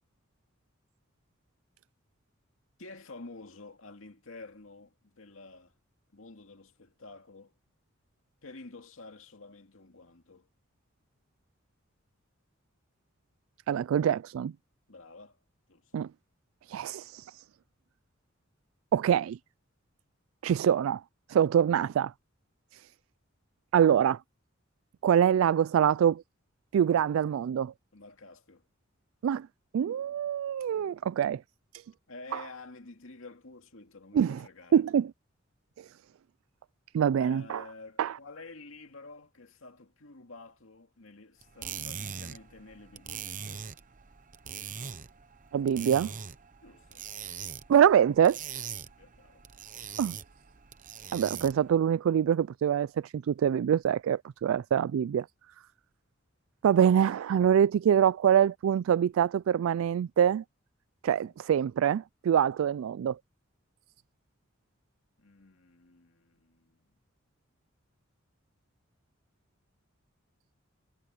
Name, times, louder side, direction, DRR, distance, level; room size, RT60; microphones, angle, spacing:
voice 1, 2.8-5.7 6.1-7.5 8.4-10.5 14.9-15.4 15.7-16.1 27.9-28.7 32.1-34.8 37.1-43.6 46.6-47.1 48.7-49.5 61.1-61.3 65.2-66.9, left 3 dB, 85° left, 2.3 m, -50 dB
voice 2, 13.7-14.5 15.9-16.1 16.7-17.4 18.9-19.4 20.4-21.0 21.3-22.1 22.7-22.9 23.7-24.2 25.0-26.2 26.7-27.7 29.2-29.5 29.7-31.4 32.3-32.4 34.1-34.4 34.7-35.1 36.9-37.6 38.0-38.1 45.5-46.1 47.7-48.4 50.0-50.2 51.1-55.3 56.6-60.4 61.0-63.2, right 9 dB, 90° right, 0.3 m, -25 dB
sound 1, 41.4-51.7, right 7 dB, 40° right, 0.9 m, -42 dB
head